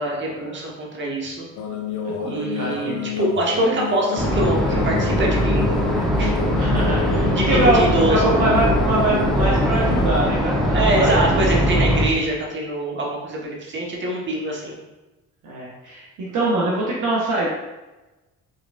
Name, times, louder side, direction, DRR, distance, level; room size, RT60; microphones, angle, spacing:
voice 1, 0.0-1.5 2.2-5.8 6.2-6.3 7.3-8.3 10.7-14.7, right 1 dB, 25° right, -3 dB, 1.2 m, -24 dB
sound 1, 1.6-10.3, left 5 dB, 45° left, 0.7 m, -29 dB
voice 2, 2.2-3.1 6.6-11.4 15.4-17.5, right 2 dB, 45° right, -5 dB, 1.0 m, -23 dB
sound 2, 4.2-12.1, equal, ahead, 0.9 m, -21 dB
4.9 x 3.7 x 2.5 m, 1.1 s
figure-of-eight pair, 45°, 41 cm